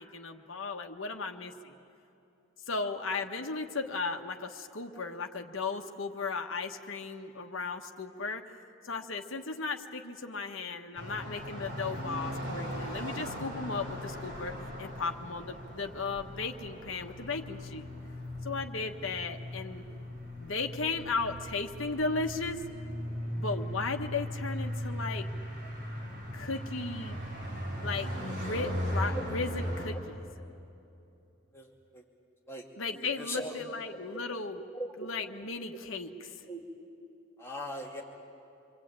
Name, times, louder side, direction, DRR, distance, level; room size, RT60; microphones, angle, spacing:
voice 1, 0.0-1.7 2.7-8.5 8.8-14.5 14.8-17.9 18.4-19.8 20.4-22.6 23.3-25.3 26.3-27.2 27.8-30.2 32.8-34.6 35.0-36.4, left 4 dB, 80° left, 4 dB, 1.3 m, -36 dB
sound 1, 10.9-29.9, equal, 50° right, 5.7 m, -38 dB
voice 2, 31.5-32.0 32.5-32.6 32.9-33.5 34.7-35.1 35.7-35.8 36.5-36.6 37.4-38.0, equal, 10° left, -2 dB, 2.7 m, -40 dB
26.5 x 23.0 x 8.9 m, 2.7 s
head